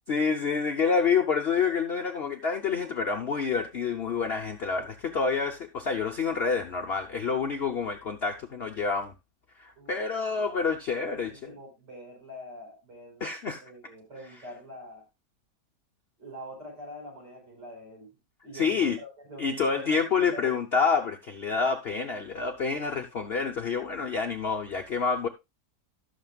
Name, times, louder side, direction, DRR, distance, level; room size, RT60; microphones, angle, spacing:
voice 1, 0.1-9.1 9.6-11.5 13.2-13.6 18.5-19.0 19.4-25.3, left 5 dB, 45° left, 0.9 m, -28 dB
voice 2, 10.3-10.7 11.0-13.2 13.6-15.0 16.2-18.1 18.4-20.6, equal, 75° right, 5.4 m, -44 dB
17.0 x 6.5 x 2.3 m
omnidirectional pair, 1.8 m